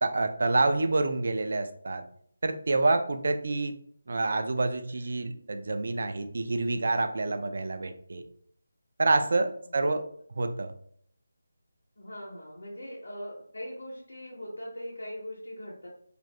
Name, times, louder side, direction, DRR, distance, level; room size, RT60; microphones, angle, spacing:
voice 1, 0.0-2.0 2.4-3.7 4.1-8.2 9.0-10.0 10.4-10.7, right 2 dB, 55° right, 8 dB, 0.3 m, -27 dB
voice 2, 12.0-15.9, equal, 85° left, -5 dB, 0.8 m, -41 dB
2.6 x 2.5 x 3.2 m, 0.64 s
figure-of-eight pair, 170°, 0 cm